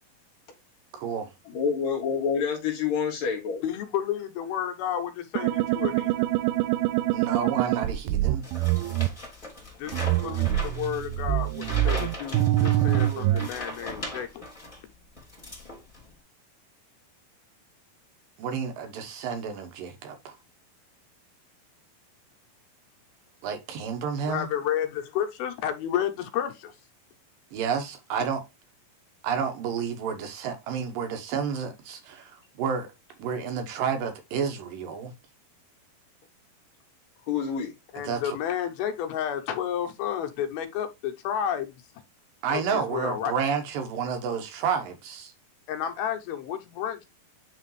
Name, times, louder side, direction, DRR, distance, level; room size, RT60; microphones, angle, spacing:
voice 1, 0.9-1.3 7.1-8.4 18.4-20.3 23.4-24.5 27.5-28.4 29.2-32.9 33.2-35.1 38.0-38.4 42.4-45.3, right 6 dB, 70° right, 2.7 m, -30 dB
voice 2, 1.5-3.6 37.3-37.7, left 6 dB, 55° left, 2.5 m, -27 dB
voice 3, 3.6-6.3 9.8-14.4 24.2-26.8 37.9-41.8 42.5-43.3 45.7-47.1, left 9 dB, 85° left, 2.9 m, -31 dB
sound 1, 5.4-9.1 9.9-13.5, right 15 dB, 90° right, 2.4 m, -25 dB
foley paper sheet of white printer paper flap in wind India, 8.4-14.8 15.2-16.1, left 2 dB, 10° left, 1.9 m, -39 dB
9.2 x 3.3 x 3.1 m
omnidirectional pair, 4.2 m